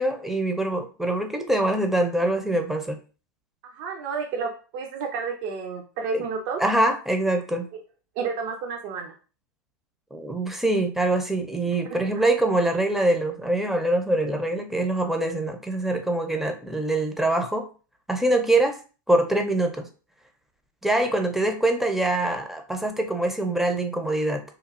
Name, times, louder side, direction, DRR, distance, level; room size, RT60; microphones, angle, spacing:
voice 1, 0.0-3.0 6.1-6.2 6.6-7.7 10.1-17.7 18.1-18.8 19.1-19.9 20.8-24.4, right 1 dB, 5° right, 4 dB, 0.5 m, -24 dB
voice 2, 3.6-6.6 8.2-9.1 11.9-12.2, right 5 dB, 55° right, 3 dB, 0.5 m, -31 dB
3.0 x 2.3 x 2.4 m, 0.36 s
hypercardioid pair, 105°, 10 cm